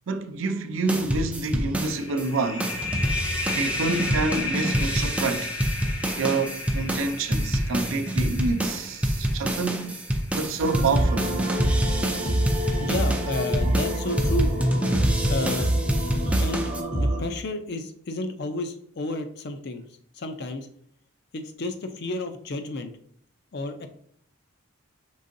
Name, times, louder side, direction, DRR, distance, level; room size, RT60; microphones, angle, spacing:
voice 1, 0.1-2.7 3.5-5.5 6.2-10.0 10.3-11.4, right 3 dB, 75° right, 0.5 m, -28 dB
sound 1, 0.9-2.3 2.6-16.8, right 1 dB, 5° right, 0.4 m, -27 dB
sound 2, 1.8-11.1, left 3 dB, 80° left, 0.8 m, -34 dB
sound 3, 10.6-17.2, right 1 dB, 35° right, 0.7 m, -26 dB
voice 2, 12.8-14.5 15.3-15.7 16.4-16.7 17.0-19.9 20.1-20.7 21.3-22.9 23.5-23.9, left 2 dB, 50° left, 0.5 m, -31 dB
5.4 x 3.6 x 2.6 m
head